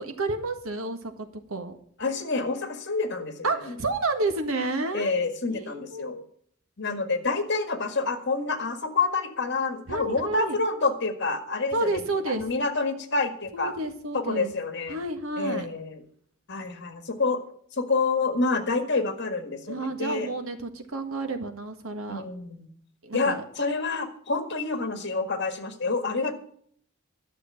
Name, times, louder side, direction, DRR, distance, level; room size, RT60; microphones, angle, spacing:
voice 1, 0.0-1.8 3.4-5.1 5.5-6.2 9.9-10.6 11.7-12.4 13.5-14.5 14.9-15.7 19.7-22.2 23.0-23.4, right 2 dB, 90° right, 7 dB, 1.7 m, -30 dB
voice 2, 2.0-3.3 3.7-3.8 4.9-6.2 6.8-11.8 12.3-13.7 14.1-15.0 15.4-16.0 16.5-17.4 17.7-20.3 22.1-22.7 23.1-26.3, left 3 dB, 60° left, 8 dB, 1.8 m, -28 dB
12.0 x 6.6 x 9.1 m, 0.62 s
head